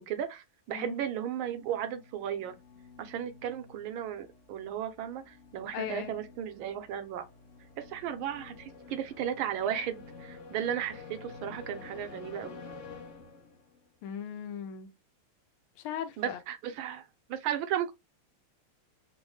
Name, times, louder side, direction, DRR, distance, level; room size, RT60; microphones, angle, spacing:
voice 1, 0.1-2.5 3.0-7.2 7.8-12.6 16.2-17.9, right 9 dB, 75° right, 1.3 m, -35 dB
sound 1, 1.2-13.9, left 4 dB, 65° left, 0.7 m, -50 dB
voice 2, 5.7-6.1 14.0-14.9 15.8-16.4, left 8 dB, 85° left, 1.5 m, -38 dB
3.7 x 2.1 x 3.0 m
omnidirectional pair, 2.4 m